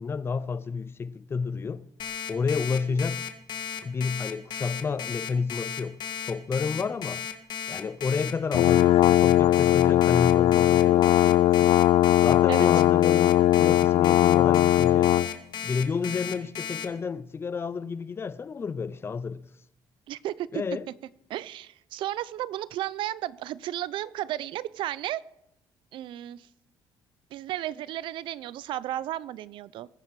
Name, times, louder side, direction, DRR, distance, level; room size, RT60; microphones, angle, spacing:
voice 1, 0.0-1.8 2.3-3.2 3.8-6.0 6.3-7.2 7.7-11.8 12.2-15.1 15.6-19.4 20.5-20.9, left 5 dB, 30° left, 0.6 m, -30 dB
Alarm, 2.0-16.8, left 8 dB, 60° left, 1.7 m, -35 dB
sound 1, 8.5-15.3, left 14 dB, 75° left, 0.4 m, -19 dB
voice 2, 20.1-20.6 21.3-25.2 25.9-26.5 27.3-29.9, right 13 dB, 75° right, 0.5 m, -33 dB
21.5 x 9.1 x 4.8 m
cardioid pair, 120°, 9 cm